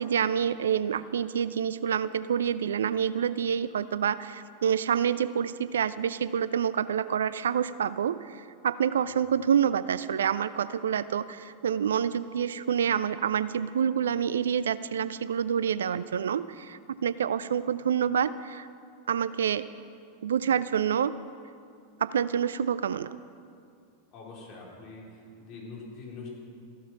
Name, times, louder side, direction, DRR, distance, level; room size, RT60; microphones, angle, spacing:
voice 1, 0.0-18.7 19.1-19.7 20.2-21.2 22.0-23.1, right 8 dB, 65° right, 16 dB, 0.4 m, -27 dB
voice 2, 24.1-26.3, left 3 dB, 35° left, -3 dB, 4.1 m, -44 dB
14.5 x 11.5 x 5.9 m, 2.3 s
figure-of-eight pair, 90°, 0 cm